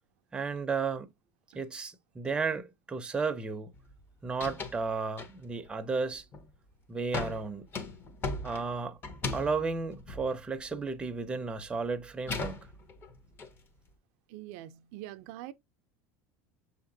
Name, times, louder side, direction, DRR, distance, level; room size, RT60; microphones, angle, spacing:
voice 1, 0.3-1.1 1.5-3.7 4.2-6.3 6.9-7.7 8.4-9.0 9.3-12.6, right 4 dB, 10° right, 0.5 m, -33 dB
sound 1, 3.7-4.0 4.3-4.8 5.2-5.7 6.1-6.6 7.1-11.2 11.5-13.5, left 3 dB, 30° left, 0.7 m, -38 dB
voice 2, 14.3-15.5, right 14 dB, 70° right, 0.4 m, -44 dB
6.5 x 2.8 x 2.6 m
supercardioid pair, 135°, 8 cm